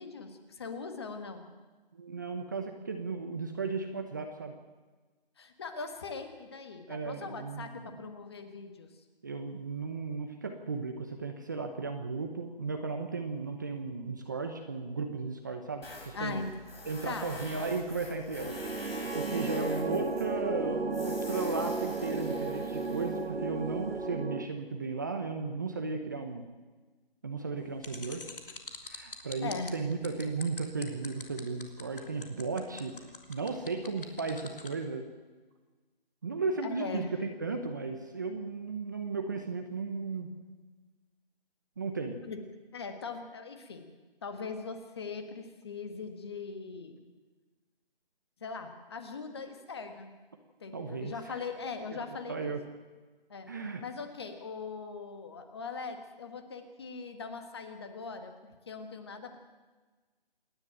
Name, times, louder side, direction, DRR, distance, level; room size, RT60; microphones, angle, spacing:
voice 1, 0.0-1.5 5.4-8.9 16.1-16.5 17.0-17.8 29.4-29.7 36.6-37.2 42.3-42.4 42.7-43.9 44.2-47.0 48.4-50.1 50.6-52.5 53.3-53.5 53.8-59.4, left 4 dB, 25° left, 7 dB, 1.6 m, -40 dB
voice 2, 1.9-4.5 6.9-8.0 9.2-16.4 16.9-26.4 27.2-28.2 28.8-32.9 33.3-35.1 36.2-40.3 41.8-42.2 50.7-51.4 52.3-52.6 53.5-53.8, right 4 dB, 20° right, 5 dB, 0.9 m, -35 dB
Tools, 15.8-24.1, left 2 dB, 90° left, 7.2 m, -47 dB
sound 1, 18.4-24.5, right 3 dB, 85° right, 1.3 m, -34 dB
sound 2, 27.8-34.7, left 4 dB, 65° left, 3.0 m, -44 dB
27.0 x 10.5 x 9.1 m, 1.3 s
figure-of-eight pair, 170°, 29 cm